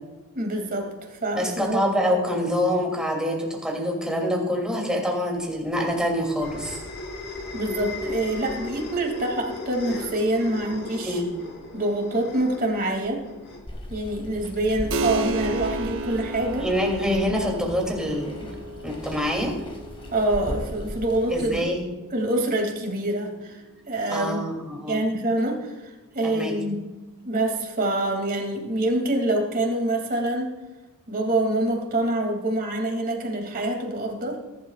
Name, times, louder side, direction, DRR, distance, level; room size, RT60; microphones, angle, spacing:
voice 1, 0.3-1.8 7.5-11.2 11.7-13.2 13.9-16.7 20.1-21.7 22.1-24.4 24.9-26.8 27.2-30.5 31.1-34.4, right 1 dB, 40° right, 2 dB, 2.7 m, -26 dB
voice 2, 1.3-6.8 11.0-11.3 16.6-18.5 18.8-19.6 21.3-21.9 24.1-25.0 26.2-26.5, equal, 5° right, -1 dB, 2.9 m, -26 dB
sound 1, 5.5-14.3, left 2 dB, 50° left, 3.2 m, -37 dB
Water, 13.7-21.6, equal, 25° left, 2.1 m, -38 dB
Keyboard (musical), 14.9-25.1, right 3 dB, 60° right, 0.8 m, -35 dB
21.0 x 11.5 x 2.5 m, 1.1 s
head